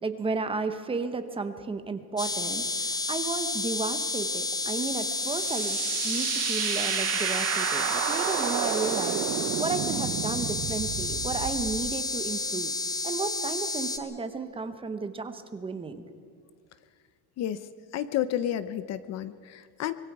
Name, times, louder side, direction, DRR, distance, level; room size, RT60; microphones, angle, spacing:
voice 1, 0.0-12.7 13.0-16.1, right 4 dB, 15° right, 8 dB, 0.9 m, -33 dB
sound 1, 2.2-14.0, left 3 dB, 10° left, 0.9 m, -31 dB
sound 2, 4.8-11.9, right 13 dB, 40° right, 0.6 m, -31 dB
voice 2, 17.9-19.9, left 11 dB, 45° left, 14 dB, 0.7 m, -31 dB
24.5 x 22.0 x 4.8 m, 2.2 s
cardioid pair, 170°, 38 cm